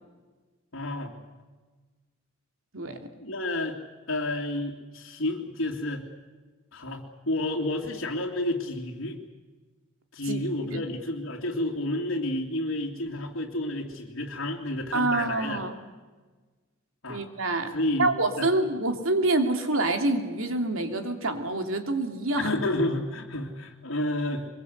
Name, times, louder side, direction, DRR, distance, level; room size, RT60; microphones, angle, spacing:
voice 1, 0.7-1.2 3.2-3.8 4.1-6.1 6.7-9.2 10.1-15.6 17.0-17.3 17.7-18.5 22.3-24.5, left 1 dB, 70° left, -4 dB, 2.6 m, -30 dB
voice 2, 14.9-15.7 17.1-17.7 18.0-22.5, right 2 dB, 75° right, 5 dB, 3.0 m, -26 dB
24.0 x 22.5 x 8.2 m, 1.3 s
head